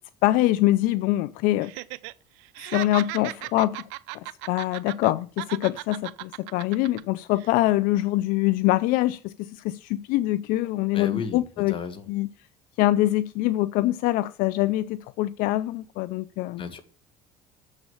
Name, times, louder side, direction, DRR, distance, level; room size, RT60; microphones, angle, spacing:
voice 1, 0.2-1.7 2.7-3.9 4.1-11.7 12.1-12.3 12.8-16.6, left 16 dB, 75° left, 0.5 m, -24 dB
Laughter, 1.6-2.1 2.4-5.1 5.4-7.0 7.4-7.5, right 22 dB, 85° right, 0.5 m, -36 dB
voice 2, 10.9-12.1 16.6-16.8, left 6 dB, 35° left, 1.5 m, -34 dB
7.2 x 6.5 x 7.1 m
supercardioid pair, 110°, 14 cm